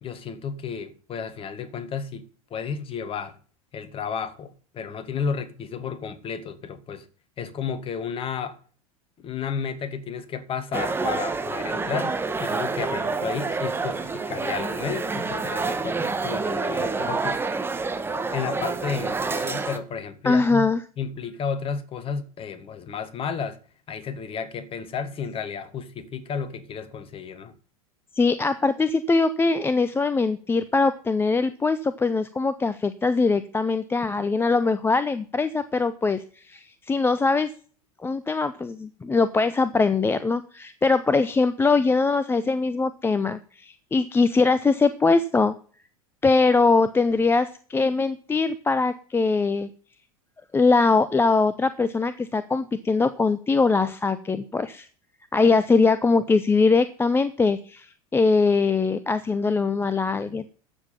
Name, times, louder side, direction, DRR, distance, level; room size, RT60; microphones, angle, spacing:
voice 1, 0.0-3.4 3.7-7.1 7.4-8.6 9.2-17.5 18.1-20.7 21.0-23.6 23.9-27.5, left 6 dB, 30° left, 1.8 m, -32 dB
sound 1, 10.7-19.8, right 4 dB, 10° right, 1.4 m, -28 dB
voice 2, 20.2-20.8 28.2-37.5 38.0-45.5 46.2-49.7 50.5-54.9 55.3-57.9 58.1-60.4, left 4 dB, 10° left, 0.6 m, -22 dB
13.0 x 7.5 x 5.7 m
figure-of-eight pair, 80°, 18 cm